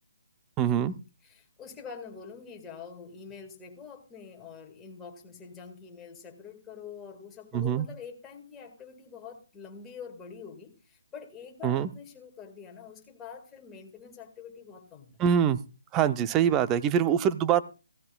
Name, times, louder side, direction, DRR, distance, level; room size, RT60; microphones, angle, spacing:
voice 1, 0.6-0.9 7.5-7.9 11.6-11.9 15.2-15.6 15.9-17.6, right 9 dB, 15° right, 13 dB, 0.6 m, -24 dB
voice 2, 1.2-15.2, left 6 dB, 10° left, 2 dB, 1.8 m, -45 dB
16.0 x 15.5 x 2.3 m, 0.32 s
hypercardioid pair, 165°, 0 cm